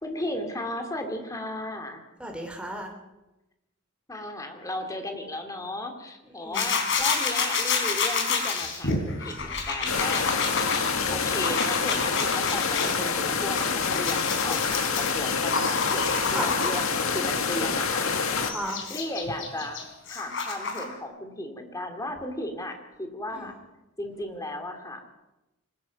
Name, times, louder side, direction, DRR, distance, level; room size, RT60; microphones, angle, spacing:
voice 1, 0.0-2.0 4.1-10.3 11.1-16.0 16.3-18.1 18.9-19.8 20.1-23.5 24.0-25.0, left 1 dB, 15° left, 5 dB, 2.6 m, -35 dB
voice 2, 2.2-2.9 6.4-6.7 16.3-16.6 18.4-18.8 23.3-23.5, right 1 dB, 5° right, 2 dB, 3.4 m, -34 dB
sound 1, 6.5-13.0 13.4-17.0 17.6-20.9, left 4 dB, 60° left, 4.2 m, -29 dB
sound 2, 9.9-18.5, left 5 dB, 75° left, 2.0 m, -27 dB
24.5 x 20.5 x 5.3 m, 1.0 s
head